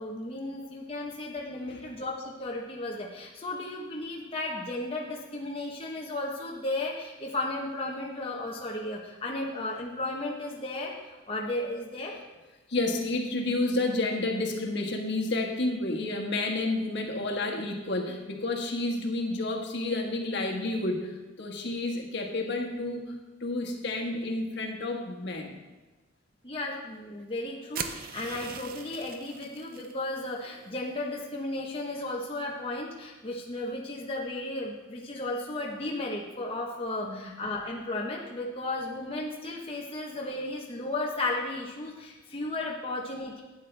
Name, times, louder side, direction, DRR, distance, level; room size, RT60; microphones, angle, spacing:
voice 1, 0.0-12.1 26.4-43.4, left 2 dB, 30° left, -3 dB, 1.0 m, -34 dB
voice 2, 12.7-25.6 37.0-37.3, left 2 dB, 60° left, 1 dB, 1.5 m, -30 dB
sound 1, 27.7-29.9, right 7 dB, 45° right, 0.6 m, -39 dB
12.0 x 9.5 x 3.4 m, 1.2 s
head